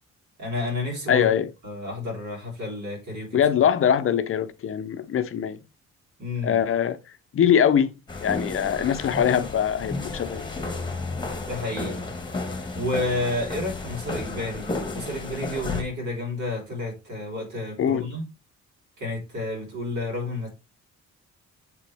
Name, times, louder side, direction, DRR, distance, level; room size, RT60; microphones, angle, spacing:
voice 1, 0.4-1.3 1.6-3.4 6.2-6.6 11.5-12.1 12.5-18.2 19.0-20.5, left 2 dB, 70° right, 4.0 m, -31 dB
voice 2, 1.1-1.5 3.3-5.6 6.4-7.0 7.3-7.9 8.2-10.5 17.8-18.1, left 8 dB, 45° left, 0.6 m, -22 dB
sound 1, 8.1-15.8, left 3 dB, 15° left, 1.2 m, -32 dB
7.6 x 3.8 x 3.3 m
cardioid pair, 90°, 30 cm